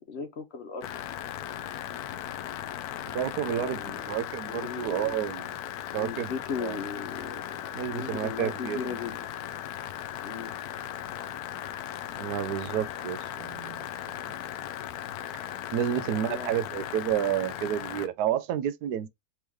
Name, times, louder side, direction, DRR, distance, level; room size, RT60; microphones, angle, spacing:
voice 1, 0.1-0.9 3.5-4.2 4.5-5.2 5.9-7.6 7.9-9.3 10.2-10.5 16.1-16.7, left 6 dB, 55° left, 0.8 m, -37 dB
sound 1, 0.8-18.1, left 11 dB, 80° left, 1.1 m, -37 dB
voice 2, 3.1-5.5 5.9-6.3 6.6-6.8 7.7-9.0 12.2-13.9 15.3-19.1, right 10 dB, 90° right, 1.2 m, -30 dB
4.4 x 3.1 x 3.4 m
omnidirectional pair, 1.6 m